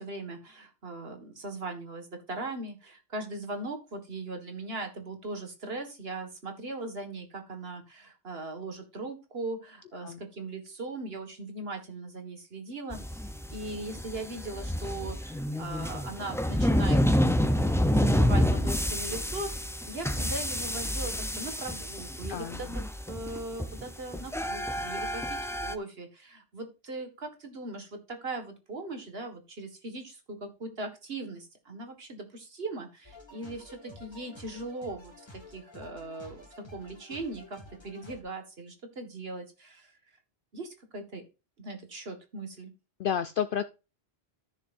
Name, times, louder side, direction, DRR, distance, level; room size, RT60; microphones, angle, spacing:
voice 1, 0.0-39.9 40.5-41.3 41.6-42.7, right 2 dB, 65° right, 6 dB, 2.0 m, -39 dB
sound 1, 12.9-25.7, equal, 5° left, 0.4 m, -28 dB
voice 2, 22.3-22.8 43.0-43.7, left 8 dB, 60° left, 11 dB, 0.7 m, -31 dB
sound 2, 33.0-38.2, left 1 dB, 25° left, 2.1 m, -50 dB
13.5 x 6.7 x 2.6 m, 0.30 s
omnidirectional pair, 1.1 m